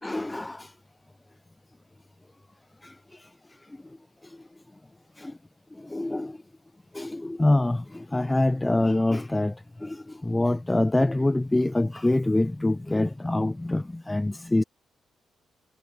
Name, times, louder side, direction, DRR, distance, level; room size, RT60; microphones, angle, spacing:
voice 1, 0.0-0.7 2.8-2.9 5.2-5.3 5.8-6.4 6.9-14.6, left 2 dB, 15° left, 2.1 m, -25 dB
cardioid pair, 80°, 0 cm